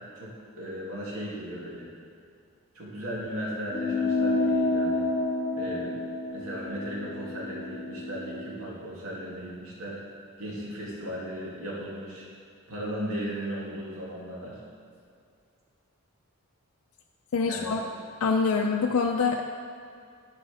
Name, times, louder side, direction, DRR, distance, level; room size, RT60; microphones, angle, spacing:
voice 1, 0.0-1.9 2.7-5.1 5.5-5.9 6.3-10.0 10.4-12.3 12.7-14.6 17.5-17.8, equal, 75° right, -5 dB, 2.2 m, -36 dB
sound 1, 3.7-8.5, left 2 dB, 40° left, 1.6 m, -29 dB
voice 2, 17.3-17.8 18.2-19.4, left 4 dB, 75° left, 2 dB, 0.4 m, -25 dB
9.6 x 5.0 x 4.9 m, 2.3 s
head